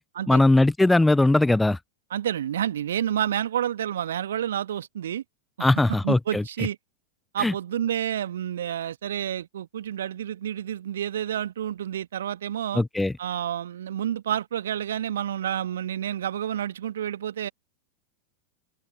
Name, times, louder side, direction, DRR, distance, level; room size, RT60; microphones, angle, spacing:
voice 1, 0.3-1.8 5.6-6.4 7.4-7.5 12.7-13.1, left 2 dB, 5° left, 0.6 m, -20 dB
voice 2, 2.1-5.2 5.6-5.7 6.0-6.8 7.3-12.8 13.2-17.5, right 10 dB, 60° right, 1.6 m, -29 dB
figure-of-eight pair, 90°, 0 cm